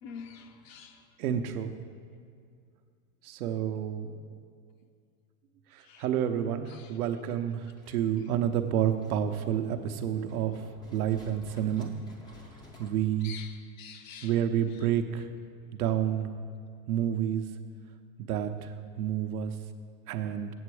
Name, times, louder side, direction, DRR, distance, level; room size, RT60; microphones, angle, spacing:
voice 1, 0.0-1.0 5.8-6.0 6.7-7.0 7.9-8.0 13.2-14.4 14.7-14.9, left 6 dB, 60° left, 6 dB, 0.9 m, -47 dB
voice 2, 1.2-1.7 3.2-4.2 5.7-10.6 10.9-11.9 12.8-13.3 14.2-15.3 15.8-16.3 16.9-17.5 18.2-19.5 20.1-20.5, right 10 dB, 75° right, 7 dB, 0.8 m, -29 dB
sound 1, 7.6-12.9, equal, 10° left, 0.5 m, -53 dB
8.2 x 7.7 x 4.8 m, 2.2 s
supercardioid pair, 140°, 44 cm